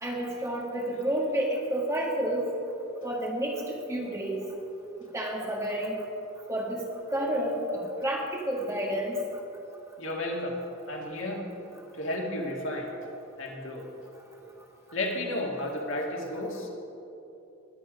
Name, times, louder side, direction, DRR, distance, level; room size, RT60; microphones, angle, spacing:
voice 1, 0.0-2.4 3.0-4.4 5.1-6.0 6.5-6.8 7.1-9.2, right 1 dB, 15° right, -2 dB, 1.8 m, -30 dB
voice 2, 10.0-10.6 10.9-11.4 11.9-12.9 13.4-13.9 14.9-16.7, left 1 dB, 75° left, 0 dB, 2.0 m, -32 dB
20.5 x 7.8 x 5.1 m, 2.9 s
head